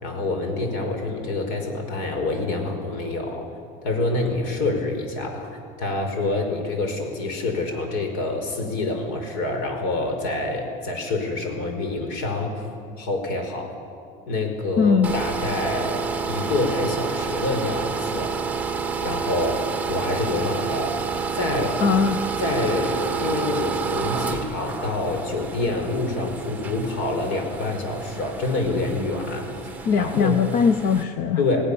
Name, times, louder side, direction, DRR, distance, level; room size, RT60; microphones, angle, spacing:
voice 1, 0.0-3.5 3.8-12.5 13.0-13.7 14.3-18.3 19.0-19.6 19.9-20.9 21.3-21.7 22.4-30.4 31.4-31.7, left 2 dB, 75° left, 4 dB, 5.1 m, -27 dB
voice 2, 14.8-15.1 21.8-22.2 29.8-31.4, left 6 dB, 50° left, 10 dB, 0.9 m, -20 dB
sound 1, 15.0-31.0, right 5 dB, 10° right, 1.4 m, -29 dB
28.0 x 18.0 x 7.0 m, 2.3 s
cardioid pair, 145°, 18 cm